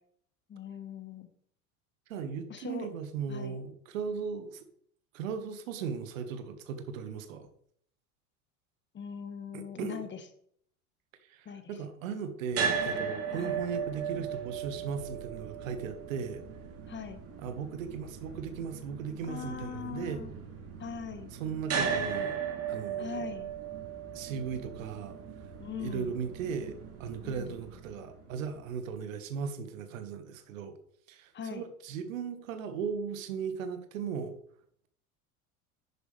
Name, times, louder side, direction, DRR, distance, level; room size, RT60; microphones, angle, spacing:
voice 1, 0.5-1.3 2.5-2.9 3.3-3.6 8.9-10.2 11.4-11.6 13.3-13.5 16.9-17.2 19.3-20.3 20.8-21.3 23.0-23.5 25.6-26.1 27.2-27.6 31.3-31.6, left 7 dB, 25° left, 9 dB, 1.5 m, -41 dB
voice 2, 2.1-4.6 5.1-7.5 9.5-10.1 11.3-16.4 17.4-20.2 21.3-22.4 22.7-23.3 24.1-25.2 25.8-30.8 31.1-34.3, right 6 dB, 60° right, 9 dB, 1.7 m, -37 dB
sound 1, 12.5-28.7, right 6 dB, 30° right, 3.3 m, -37 dB
11.5 x 10.0 x 3.4 m, 0.65 s
figure-of-eight pair, 75°, 45 cm